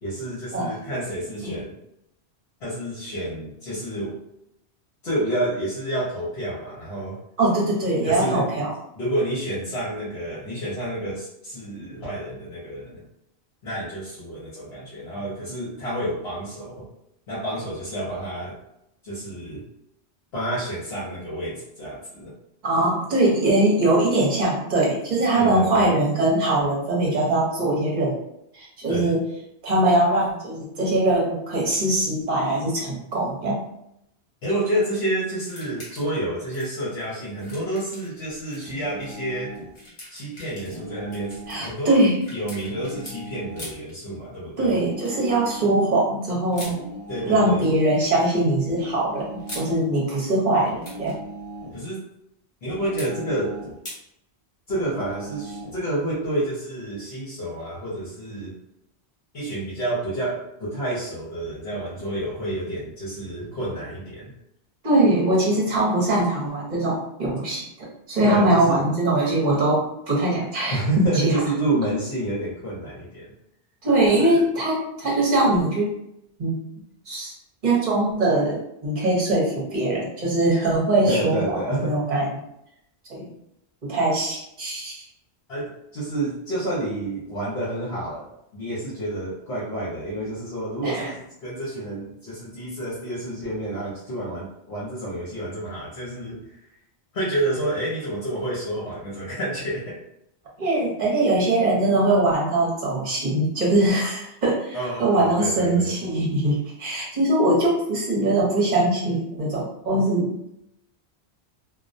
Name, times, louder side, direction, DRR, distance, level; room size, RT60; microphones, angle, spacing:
voice 1, 0.0-1.7 2.6-4.1 5.0-7.2 8.0-8.7 9.0-13.0 13.6-16.9 17.3-18.6 19.0-19.6 20.3-22.3 25.4-25.9 28.9-29.2 34.4-39.5 40.1-44.8 47.1-47.6 51.7-52.0 52.6-53.6 54.7-58.5 59.3-64.3 68.2-68.8 70.7-73.3 74.1-74.5 81.0-82.0 85.5-96.6 97.1-100.0 104.7-105.9, right 1 dB, 70° left, -9 dB, 1.0 m, -29 dB
voice 2, 7.4-8.7 22.6-28.1 28.5-29.2 29.6-33.6 41.5-42.2 44.6-46.7 47.2-49.3 49.5-51.2 64.8-67.6 68.1-70.8 71.2-71.3 73.8-75.9 76.4-76.5 77.1-77.3 77.6-81.4 81.8-82.3 83.1-83.3 83.9-85.0 90.8-91.1 100.6-110.3, right 2 dB, 45° right, -4 dB, 0.9 m, -22 dB
sound 1, 35.5-36.2 36.5-38.6 39.0-39.2 39.6-43.2 43.6-43.9 45.1-45.4 46.5-46.8 47.9-48.4 49.2-49.7 50.6-51.2 53.0-53.1 53.9-54.0, left 1 dB, 35° left, 0.7 m, -42 dB
sound 2, 38.6-39.8 40.6-41.8 42.7-43.8 44.7-45.8 46.7-47.8 48.7-49.8 50.7-51.8 52.7-53.8 54.7-55.8, right 1 dB, 75° right, 0.8 m, -39 dB
2.3 x 2.1 x 2.5 m, 0.79 s
omnidirectional pair, 1.1 m